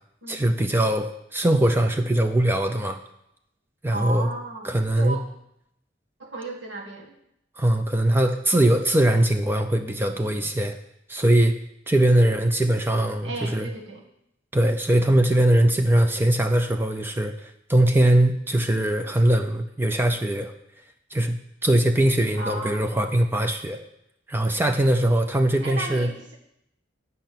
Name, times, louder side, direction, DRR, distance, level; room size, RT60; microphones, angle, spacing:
voice 1, 0.3-3.0 3.8-4.3 4.6-5.2 7.6-10.8 11.1-11.5 11.9-13.7 14.5-20.5 21.1-23.8 24.3-26.1, right 1 dB, 10° right, 6 dB, 0.4 m, -21 dB
voice 2, 3.9-5.2 6.2-7.1 13.2-14.0 22.3-22.7 25.6-26.4, right 2 dB, 80° right, -1 dB, 1.8 m, -34 dB
8.9 x 5.5 x 5.9 m, 0.78 s
head